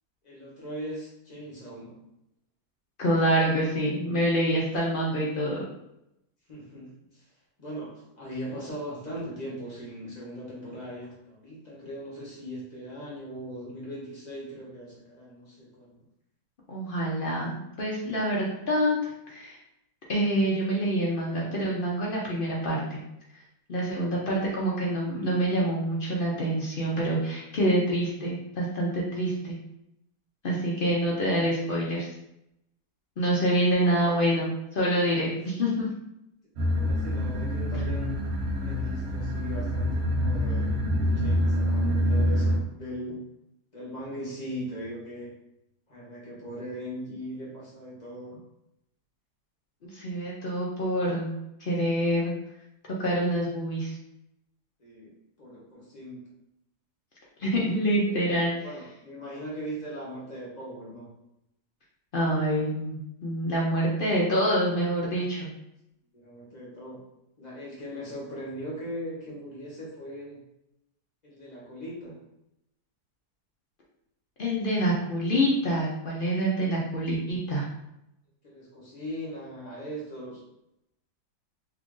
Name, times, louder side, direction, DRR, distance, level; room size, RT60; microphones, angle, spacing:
voice 1, 0.2-2.0 6.5-7.2 7.6-16.0 33.8-34.2 36.7-38.2 38.6-43.2 43.7-45.3 45.9-48.4 54.8-55.1 55.4-56.2 58.3-61.1 66.1-67.0 67.4-70.4 71.2-72.2 78.4-80.4, equal, 30° left, -5 dB, 1.0 m, -39 dB
voice 2, 3.0-5.6 16.7-19.6 20.1-23.0 23.7-29.6 30.4-32.1 33.2-35.9 49.8-51.3 51.6-52.3 53.0-54.0 57.4-58.7 62.1-65.5 74.4-77.7, equal, 60° left, -4 dB, 0.5 m, -26 dB
sound 1, 36.6-42.6, equal, 60° right, 0.7 m, -26 dB
2.9 x 2.4 x 3.7 m, 0.83 s
omnidirectional pair, 1.7 m